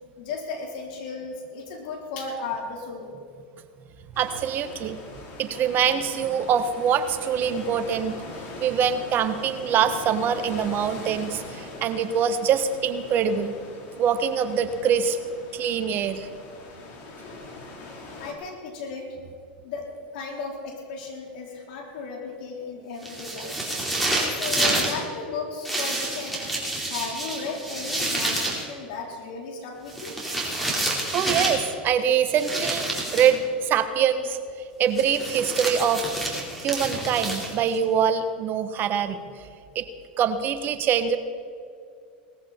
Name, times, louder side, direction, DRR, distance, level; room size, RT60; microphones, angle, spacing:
voice 1, 0.2-3.1 7.7-7.8 11.2-11.3 18.2-19.2 19.6-23.6 24.2-26.4 26.8-30.2, left 4 dB, 70° left, 0 dB, 4.0 m, -35 dB
sound 1, 4.1-18.3, left 2 dB, 50° left, 3.7 m, -41 dB
voice 2, 4.2-5.0 5.4-8.1 8.6-13.5 14.0-15.2 15.5-16.3 31.1-34.4 34.8-39.2 39.7-39.8 40.2-41.2, right 7 dB, 40° right, 10 dB, 1.2 m, -24 dB
sound 2, 23.0-25.0 25.6-28.6 29.9-31.7 32.3-33.4 34.9-37.8, right 1 dB, ahead, 4.3 m, -28 dB
19.0 x 14.5 x 4.4 m, 2.3 s
hypercardioid pair, 100°, 5 cm